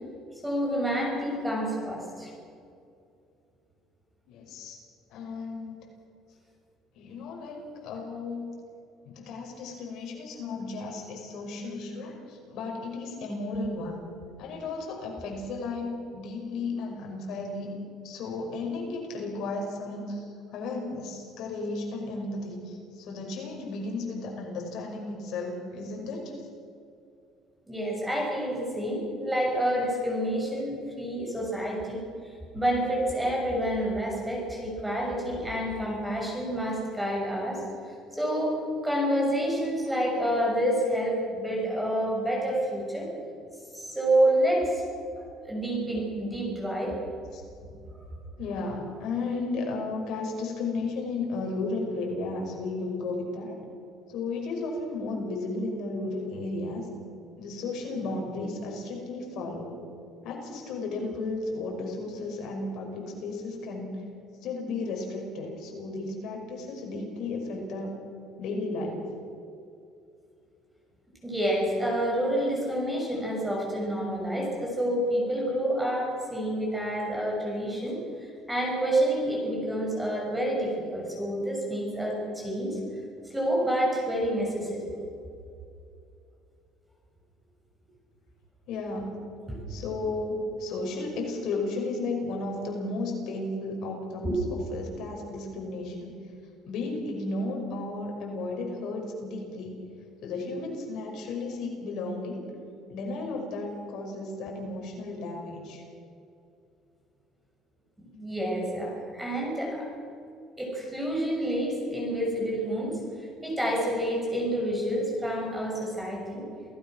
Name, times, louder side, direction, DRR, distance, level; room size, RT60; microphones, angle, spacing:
voice 1, 0.4-2.3 27.7-37.6 38.1-43.1 43.7-44.8 45.2-46.9 71.2-82.8 83.3-84.8 89.5-89.6 94.2-94.3 108.0-109.9 110.6-113.0 113.4-116.4, right 1 dB, 5° right, -2 dB, 6.3 m, -28 dB
voice 2, 4.3-4.8 5.1-5.8 7.0-8.5 9.1-14.1 14.4-17.7 18.0-26.3 43.2-43.3 47.3-47.8 48.4-53.6 54.1-56.9 57.4-59.8 60.2-63.9 64.4-67.9 68.4-69.0 88.7-89.2 89.7-96.1 96.7-99.8 100.2-102.5 102.9-105.8, left 3 dB, 60° left, 1 dB, 5.5 m, -34 dB
28.0 x 17.5 x 6.3 m, 2.5 s
cardioid pair, 160°, 0 cm